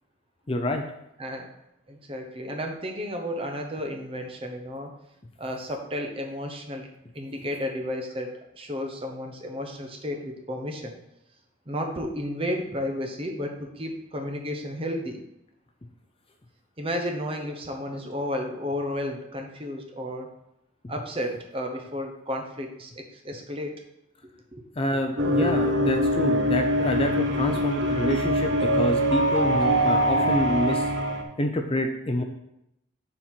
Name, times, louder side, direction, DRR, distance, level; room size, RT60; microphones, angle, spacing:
voice 1, 0.5-0.8 24.8-30.9 31.4-32.2, left 1 dB, 25° left, 4 dB, 0.5 m, -27 dB
voice 2, 1.2-1.5 1.9-4.9 5.4-6.9 7.1-11.0 11.7-15.2 16.8-20.3 20.9-23.7 24.5-24.6, equal, 25° right, 3 dB, 0.9 m, -32 dB
sound 1, 25.2-31.2, equal, 60° right, 1.0 m, -23 dB
7.1 x 4.2 x 5.9 m, 0.84 s
head